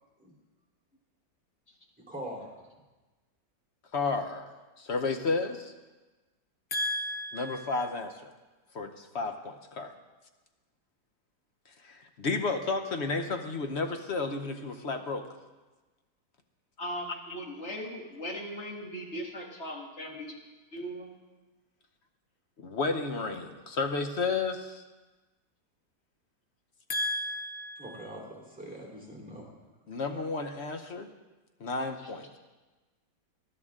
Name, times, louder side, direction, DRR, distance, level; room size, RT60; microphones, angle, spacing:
voice 1, 2.1-2.5 27.8-29.4 30.1-30.3, right 1 dB, 5° right, -2 dB, 3.5 m, -42 dB
voice 2, 3.9-4.4 4.8-5.7 6.7-8.3 8.7-9.9 11.8-15.2 22.6-24.8 26.9-28.1 29.9-31.1 31.6-32.4, left 3 dB, 55° left, 7 dB, 0.8 m, -32 dB
voice 3, 16.8-20.4 20.7-21.1 32.0-32.1, equal, 35° left, 0 dB, 2.0 m, -39 dB
19.5 x 11.0 x 3.7 m, 1.2 s
omnidirectional pair, 2.0 m